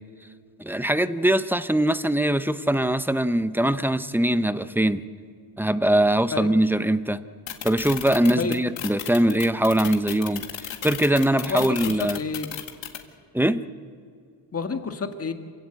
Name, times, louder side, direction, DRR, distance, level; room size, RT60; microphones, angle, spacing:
voice 1, 0.6-5.0 5.6-7.2 7.6-12.2 13.3-13.6, right 1 dB, 5° right, 13 dB, 0.7 m, -22 dB
sound 1, 7.5-13.0, left 10 dB, 70° left, 2.1 m, -33 dB
voice 2, 11.5-12.5 14.5-15.3, left 4 dB, 30° left, 6 dB, 1.8 m, -29 dB
27.5 x 17.0 x 8.1 m, 2.4 s
cardioid pair, 120°, 46 cm